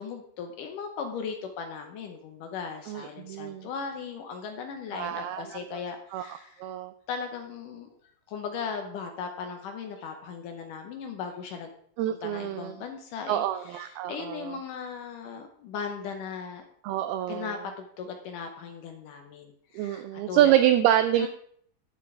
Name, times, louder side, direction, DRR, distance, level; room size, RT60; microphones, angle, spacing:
voice 1, 0.0-6.6 7.1-8.0 8.3-11.7 12.1-16.7 17.3-20.5 21.2-21.3, left 6 dB, 75° left, 4 dB, 2.0 m, -38 dB
voice 2, 2.9-3.7 4.9-5.6 6.1-6.9 12.0-12.7 13.3-14.6 16.8-17.6 19.7-21.3, right 12 dB, 85° right, 10 dB, 2.3 m, -26 dB
12.0 x 8.5 x 3.3 m, 0.62 s
omnidirectional pair, 4.8 m